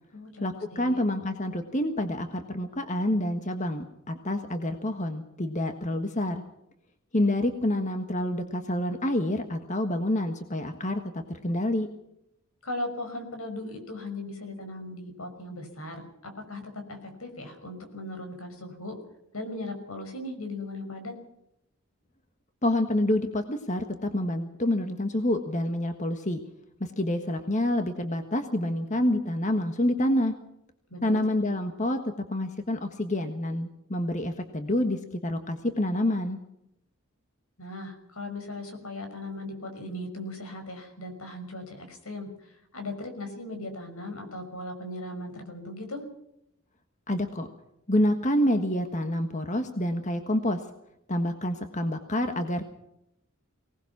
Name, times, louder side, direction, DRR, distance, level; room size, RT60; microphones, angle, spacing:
voice 1, 0.4-6.4 7.1-11.0 11.3-11.9 22.6-26.4 26.8-30.3 31.0-32.0 32.3-36.4 47.1-47.5 47.9-50.6 51.1-52.6, left 1 dB, 35° left, 7 dB, 1.5 m, -27 dB
voice 2, 12.6-19.0 19.3-21.1 30.9-31.5 37.6-46.0, left 1 dB, 80° left, 6 dB, 5.9 m, -38 dB
24.5 x 19.0 x 6.0 m, 0.80 s
head